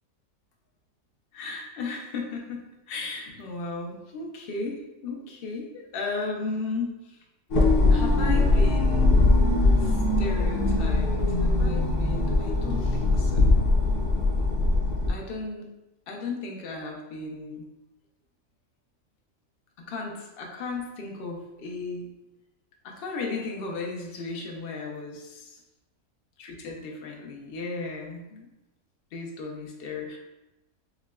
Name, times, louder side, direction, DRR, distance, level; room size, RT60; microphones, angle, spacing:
voice 1, 1.3-7.2 7.9-9.2 9.8-13.6 15.1-15.7 16.1-17.7 19.8-22.1 22.8-25.6 26.4-28.5 29.1-30.2, left 3 dB, 60° left, 0 dB, 0.6 m, -35 dB
sound 1, 7.5-15.1, left 2 dB, 80° left, 1.4 m, -21 dB
5.7 x 2.1 x 2.3 m, 0.99 s
omnidirectional pair, 1.6 m